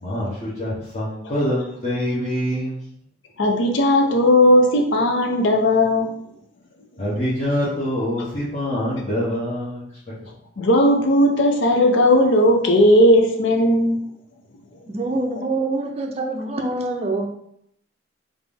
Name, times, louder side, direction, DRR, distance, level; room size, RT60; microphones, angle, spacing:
voice 1, 0.0-2.9 7.0-10.1, equal, 35° left, -10 dB, 0.9 m, -25 dB
voice 2, 3.4-6.1 10.6-14.0, left 1 dB, 70° left, 2 dB, 0.6 m, -16 dB
voice 3, 14.9-17.3, right 2 dB, 30° right, 2 dB, 0.5 m, -25 dB
3.6 x 2.6 x 3.4 m, 0.73 s
head